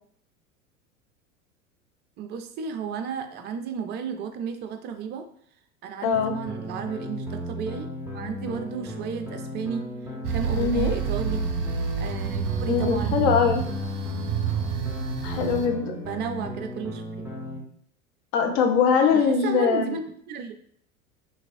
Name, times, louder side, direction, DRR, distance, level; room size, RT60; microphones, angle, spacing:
voice 1, 2.2-5.3 5.8-9.9 10.3-11.5 12.0-13.2 15.8-17.3 19.1-20.5, right 7 dB, 25° right, 7 dB, 0.5 m, -33 dB
voice 2, 6.0-6.4 10.5-11.0 12.7-13.6 15.2-15.9 18.3-19.9, left 6 dB, 40° left, 4 dB, 0.9 m, -22 dB
sound 1, 6.1-17.6, equal, 5° right, 0.9 m, -35 dB
sound 2, 10.2-15.7, right 6 dB, 45° right, 0.9 m, -28 dB
5.9 x 2.6 x 2.6 m, 0.63 s
figure-of-eight pair, 85°, 42 cm